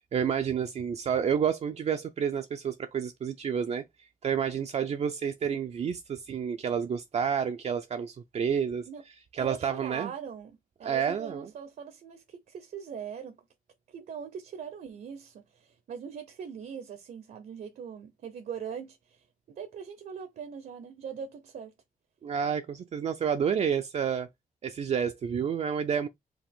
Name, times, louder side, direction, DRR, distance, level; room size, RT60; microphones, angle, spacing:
voice 1, 0.1-8.9 9.3-10.1 10.8-11.5 22.2-24.3 24.6-26.1, right 7 dB, 45° right, 0.5 m, -29 dB
voice 2, 9.3-10.5 10.8-13.4 13.9-21.7, right 7 dB, 70° right, 0.8 m, -41 dB
4.9 x 2.9 x 3.6 m
wide cardioid pair, 165°, 15 cm